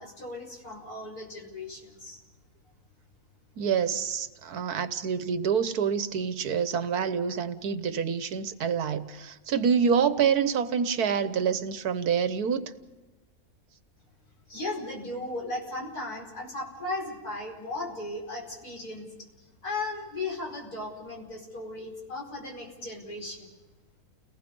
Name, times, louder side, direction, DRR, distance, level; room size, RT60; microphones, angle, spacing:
voice 1, 0.0-2.2 14.5-19.1 19.6-23.5, left 2 dB, 75° left, 5.3 m, -36 dB
voice 2, 3.6-12.6, right 7 dB, 75° right, 1.5 m, -27 dB
30.0 x 19.0 x 5.4 m
omnidirectional pair, 1.6 m